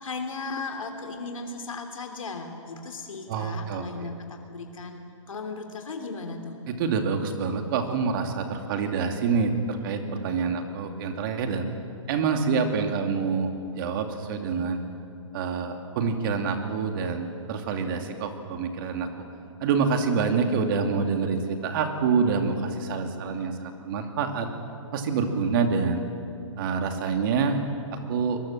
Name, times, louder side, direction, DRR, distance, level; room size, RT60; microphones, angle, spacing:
voice 1, 0.0-4.9 5.3-6.5, left 4 dB, 80° left, 4 dB, 3.0 m, -36 dB
voice 2, 3.3-4.1 6.7-11.7 12.1-14.8 15.3-19.1 19.6-24.5 24.9-26.0 26.6-27.6 28.1-28.4, right 5 dB, 40° right, 5 dB, 2.7 m, -26 dB
24.0 x 21.5 x 7.5 m, 2.6 s
hypercardioid pair, 140°, 17 cm